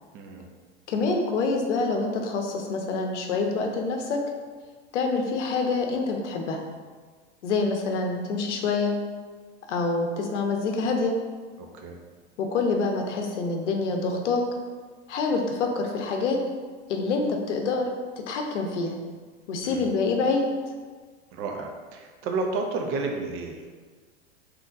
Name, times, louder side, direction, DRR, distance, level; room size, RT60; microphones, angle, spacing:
voice 1, 0.1-0.4 11.6-12.0 19.6-19.9 21.3-23.8, right 3 dB, 40° right, 3 dB, 0.5 m, -32 dB
voice 2, 0.9-4.2 4.9-6.6 7.4-8.9 9.7-11.1 12.4-14.4 15.1-16.4 16.9-17.9 18.3-18.9 19.5-20.5, left 3 dB, 75° left, 3 dB, 0.7 m, -26 dB
3.6 x 3.0 x 2.5 m, 1.5 s
hypercardioid pair, 100°, 36 cm